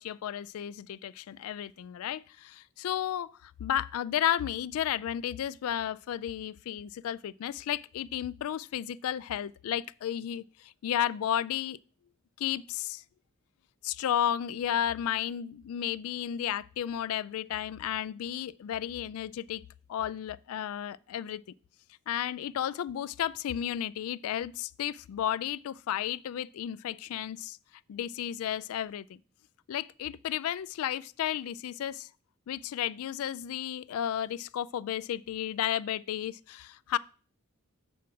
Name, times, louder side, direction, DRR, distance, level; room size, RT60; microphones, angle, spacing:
voice 1, 0.0-11.8 12.4-13.0 13.8-19.6 19.9-21.4 22.1-27.6 27.9-29.2 29.7-32.1 32.5-37.0, left 10 dB, 70° left, 0.3 m, -33 dB
7.1 x 4.8 x 6.0 m
head